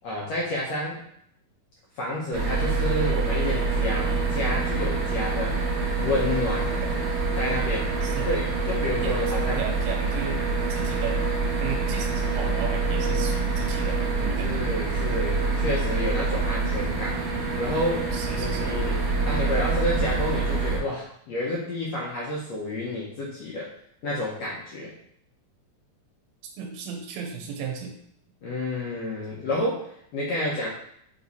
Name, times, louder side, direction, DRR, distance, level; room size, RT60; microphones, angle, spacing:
voice 1, 0.0-1.0 1.9-5.6 6.0-6.7 7.3-7.9 8.3-9.6 14.4-19.0 19.2-23.7 24.0-24.9 28.4-30.7, left 1 dB, 80° left, -5 dB, 1.4 m, -30 dB
sound 1, 2.3-20.8, right 3 dB, 60° right, 1.9 m, -26 dB
voice 2, 9.6-10.4 10.7-11.2 11.6-14.5 18.1-18.8 26.6-28.0, right 6 dB, 75° right, 1 dB, 2.6 m, -35 dB
7.6 x 3.2 x 4.1 m, 0.71 s
omnidirectional pair, 4.4 m